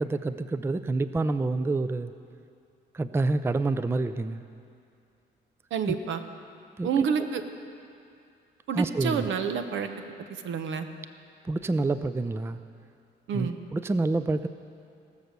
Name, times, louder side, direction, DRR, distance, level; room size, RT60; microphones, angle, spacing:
voice 1, 0.0-2.1 2.9-4.4 5.9-6.0 6.8-7.0 8.7-9.3 11.4-12.6 13.3-14.5, right 3 dB, 10° right, 12 dB, 0.4 m, -27 dB
voice 2, 5.7-6.2 6.8-7.4 8.7-9.9 10.4-10.9 13.3-13.6, right 7 dB, 75° right, 8 dB, 0.9 m, -28 dB
19.5 x 6.8 x 6.6 m, 2.5 s
cardioid pair, 90°, 20 cm